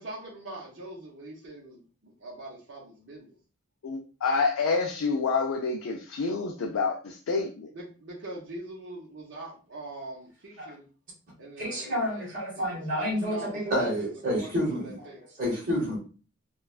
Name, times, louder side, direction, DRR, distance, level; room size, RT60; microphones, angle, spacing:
voice 1, 0.0-3.4 7.7-10.9 11.4-14.1 14.3-14.5 14.8-15.2, right 2 dB, 60° right, 0.7 m, -43 dB
voice 2, 3.8-7.7, left 4 dB, 90° left, 0.4 m, -28 dB
voice 3, 11.6-15.1 15.4-16.0, equal, 40° right, 1.1 m, -29 dB
3.1 x 2.2 x 2.3 m
head